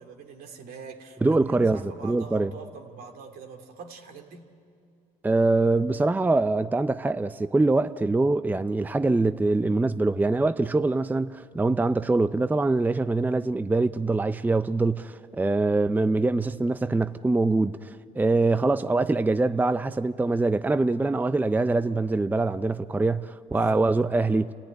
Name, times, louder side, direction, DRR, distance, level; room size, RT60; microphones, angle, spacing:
voice 1, 0.0-4.5 23.5-23.8, right 5 dB, 75° right, 2.8 m, -43 dB
voice 2, 1.2-2.5 5.2-24.5, right 3 dB, 10° right, 0.5 m, -24 dB
29.0 x 14.5 x 9.9 m
cardioid pair, 90°, 16 cm